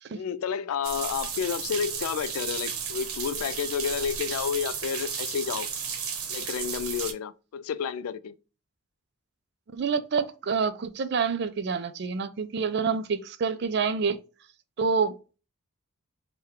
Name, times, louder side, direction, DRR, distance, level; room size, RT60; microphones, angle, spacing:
voice 1, 0.1-5.7 6.3-8.3, left 7 dB, 80° left, 0.3 m, -30 dB
sound 1, 0.8-7.1, right 6 dB, 80° right, 0.8 m, -33 dB
voice 2, 9.7-14.2 14.8-15.4, right 5 dB, 50° right, 0.3 m, -27 dB
3.6 x 2.2 x 4.2 m
head